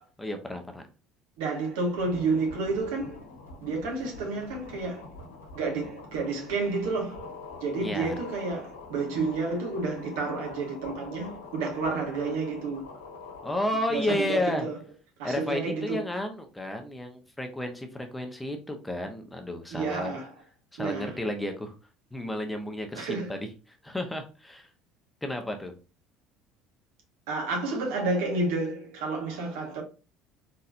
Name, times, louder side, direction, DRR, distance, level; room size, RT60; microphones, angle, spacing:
voice 1, 0.2-0.8 7.8-8.1 13.4-14.7 15.2-20.1 20.7-21.7 22.1-24.7 25.2-25.7, left 1 dB, 10° left, 0.9 m, -32 dB
voice 2, 1.4-3.2 3.6-5.1 5.5-7.3 7.6-12.8 13.9-14.8 15.2-16.1 19.7-20.3 20.8-21.2 23.0-23.3 27.3-29.8, right 3 dB, 70° right, 1.5 m, -30 dB
sound 1, 1.9-13.6, left 4 dB, 85° left, 1.3 m, -45 dB
4.2 x 3.9 x 2.6 m
hypercardioid pair, 65°, 0 cm